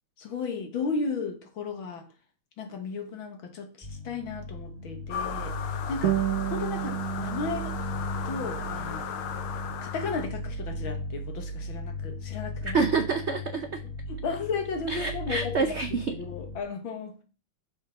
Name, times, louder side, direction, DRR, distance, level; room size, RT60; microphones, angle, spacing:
voice 1, 0.2-2.1 2.6-6.2 6.5-7.8 8.3-9.1 9.8-12.8 14.1-17.2, left 4 dB, 70° left, 6 dB, 2.3 m, -34 dB
sound 1, 3.8-16.6, left 2 dB, 10° left, 2.1 m, -37 dB
sound 2, 5.1-10.3, left 8 dB, 90° left, 1.8 m, -37 dB
sound 3, 6.0-11.0, right 14 dB, 60° right, 1.1 m, -33 dB
voice 2, 12.7-13.8 14.9-16.1, right 4 dB, 80° right, 8 dB, 0.6 m, -27 dB
8.4 x 6.2 x 5.7 m, 0.36 s
omnidirectional pair, 2.3 m